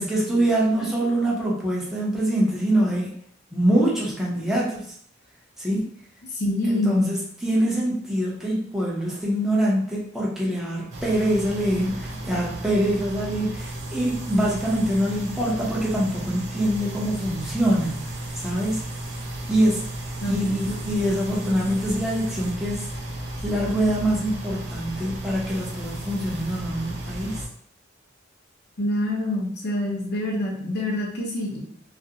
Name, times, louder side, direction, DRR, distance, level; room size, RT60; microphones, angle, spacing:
voice 1, 0.0-3.1 3.5-4.8 5.6-5.9 6.7-18.8 19.5-19.8 20.2-22.9 23.4-27.4, right 1 dB, ahead, -5 dB, 0.6 m, -24 dB
voice 2, 6.3-7.2 20.2-21.1 28.8-31.6, left 1 dB, 55° left, -2 dB, 0.7 m, -26 dB
sound 1, 10.9-27.5, right 1 dB, 60° right, 0.5 m, -34 dB
2.4 x 2.1 x 2.7 m, 0.64 s
head